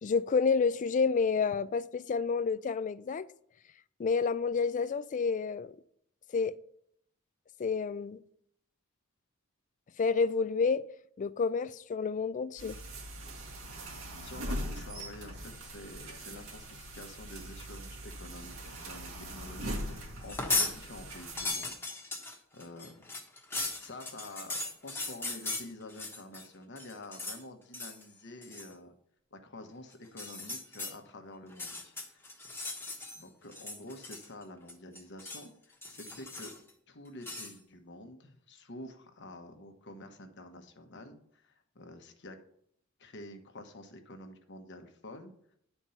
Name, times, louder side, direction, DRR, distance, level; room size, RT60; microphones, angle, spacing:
voice 1, 0.0-3.3 4.0-5.8 6.3-6.5 7.6-8.2 10.0-10.8 11.2-12.8, left 5 dB, 35° left, 0.3 m, -29 dB
sound 1, 12.6-21.5, equal, 90° right, 2.1 m, -41 dB
voice 2, 14.2-21.9 22.5-23.0 23.5-28.9 29.3-32.2 33.1-36.5 36.9-42.4 43.0-45.3, left 1 dB, 60° left, 1.1 m, -48 dB
sound 2, 20.2-20.8 21.1-26.5 26.8-27.4 27.7-28.0 28.4-28.7 30.1-30.9 31.5-33.2 33.5-34.4 34.7-35.5 35.8-36.7 37.2-37.5, left 3 dB, 10° left, 1.1 m, -37 dB
10.0 x 4.5 x 5.6 m
head